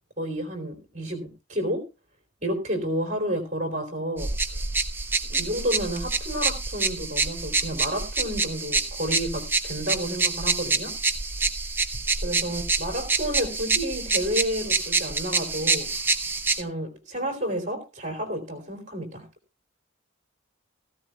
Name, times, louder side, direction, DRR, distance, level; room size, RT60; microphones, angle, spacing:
voice 1, 0.2-1.8 2.4-4.6 5.3-11.0 12.2-15.9 16.6-19.3, equal, 35° right, 4 dB, 3.3 m, -30 dB
sound 1, 4.2-16.6, right 3 dB, 10° right, 0.6 m, -27 dB
16.5 x 15.0 x 2.3 m, 0.26 s
head